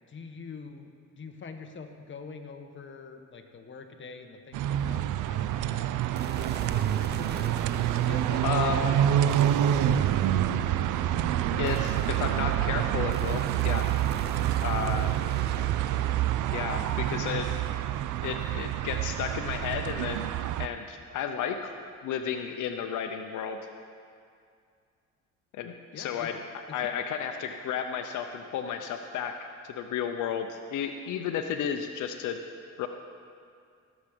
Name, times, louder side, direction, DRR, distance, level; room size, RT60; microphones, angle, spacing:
voice 1, 0.1-6.0 6.7-7.6 7.9-10.6 15.0-15.8 17.2-17.5 19.1-19.2 25.9-26.4 26.7-26.9, left 5 dB, 40° left, 5 dB, 1.2 m, -45 dB
sound 1, 4.5-20.7, right 12 dB, 80° right, 0.5 m, -27 dB
sound 2, 6.2-20.5, right 5 dB, 35° right, 0.7 m, -41 dB
voice 2, 8.4-9.0 11.6-13.9 14.6-15.1 16.5-17.5 18.2-20.3 20.6-21.6 22.0-23.6 25.5-26.4 26.7-29.3 29.6-32.4 32.8-32.9, left 8 dB, 80° left, 6 dB, 0.7 m, -32 dB
18.0 x 7.3 x 5.1 m, 2.2 s
cardioid pair, 90°, 30 cm